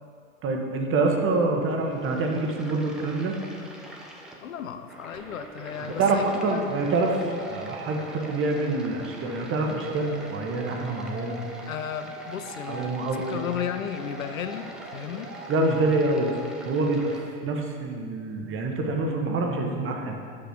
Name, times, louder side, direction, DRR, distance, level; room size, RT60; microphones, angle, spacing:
voice 1, 0.4-3.3 6.0-11.4 12.7-13.4 15.5-16.4 16.6-20.2, right 2 dB, 30° right, 2 dB, 1.0 m, -26 dB
sound 1, 1.7-17.3, equal, ahead, 0.8 m, -45 dB
voice 2, 4.4-6.6 11.7-15.3, left 8 dB, 85° left, 9 dB, 0.6 m, -34 dB
sound 2, 5.1-16.5, right 3 dB, 70° right, 1.1 m, -43 dB
6.2 x 5.3 x 5.1 m, 2.3 s
hypercardioid pair, 90°, 40 cm